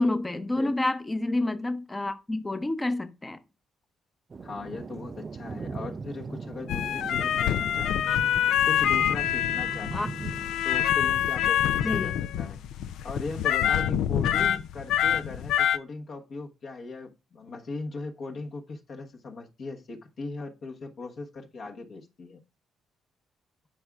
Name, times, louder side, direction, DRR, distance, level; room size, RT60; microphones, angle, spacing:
voice 1, 0.0-3.4 9.9-10.1 11.7-12.2 14.4-14.6, left 2 dB, 15° left, 0.7 m, -28 dB
Thunder, 4.3-10.7, right 4 dB, 35° right, 0.4 m, -39 dB
voice 2, 4.4-8.0 8.6-10.1 10.6-12.6 13.0-22.4, left 3 dB, 60° left, 1.2 m, -39 dB
sound 1, 6.7-15.8, left 10 dB, 85° left, 0.4 m, -26 dB
12.5 x 4.8 x 2.4 m
cardioid pair, 90°, 0 cm